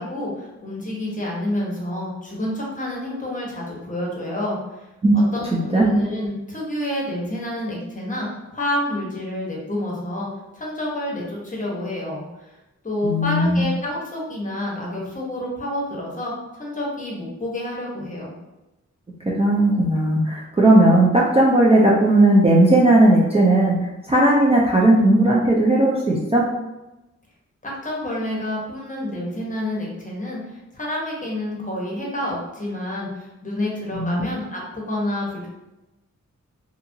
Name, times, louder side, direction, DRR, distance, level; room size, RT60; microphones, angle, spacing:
voice 1, 0.0-4.9 5.1-10.3 10.5-12.6 12.8-18.3 27.6-35.5, left 1 dB, 25° left, -4 dB, 0.8 m, -28 dB
voice 2, 5.5-5.9 13.0-13.7 19.4-23.7 24.1-26.4 33.9-34.3, right 1 dB, 20° right, -4 dB, 0.4 m, -16 dB
2.8 x 2.4 x 2.6 m, 0.99 s
wide cardioid pair, 115°, 29 cm